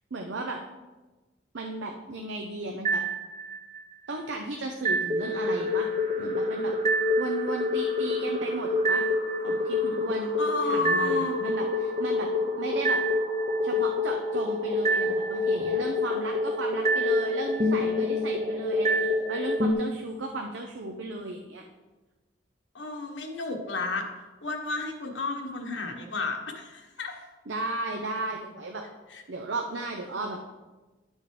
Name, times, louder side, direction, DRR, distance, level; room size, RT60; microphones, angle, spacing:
voice 1, 0.1-0.6 1.5-3.0 4.1-5.9 6.2-6.7 7.2-9.1 9.4-10.3 10.6-12.3 12.6-13.0 13.6-21.6 27.5-28.8 29.3-30.4, right 2 dB, 80° right, 2 dB, 0.7 m, -35 dB
sound 1, 2.8-3.8 4.8-19.7, left 1 dB, 40° right, 0.9 m, -27 dB
voice 2, 10.4-11.3 22.7-24.1 24.4-27.1 29.1-29.2, left 3 dB, 90° left, 1 dB, 1.3 m, -32 dB
11.0 x 6.3 x 3.3 m, 1.2 s
head